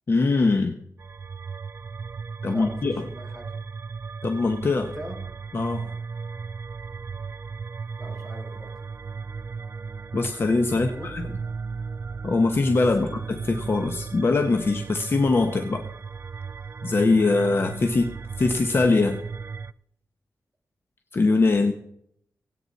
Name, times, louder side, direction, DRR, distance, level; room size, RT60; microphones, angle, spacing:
voice 1, 0.1-0.7 2.4-3.0 4.2-4.9 5.5-5.9 10.1-11.2 12.2-15.9 16.8-18.1 18.4-19.2 21.1-21.7, left 3 dB, 40° left, 6 dB, 1.1 m, -22 dB
sound 1, 1.0-19.7, right 5 dB, 40° right, 0.5 m, -35 dB
voice 2, 2.4-3.5 4.8-5.2 8.0-8.7 10.8-11.1 13.0-13.2, right 1 dB, 5° left, -2 dB, 6.1 m, -41 dB
23.0 x 9.0 x 4.2 m, 0.70 s
wide cardioid pair, 130°, 6 cm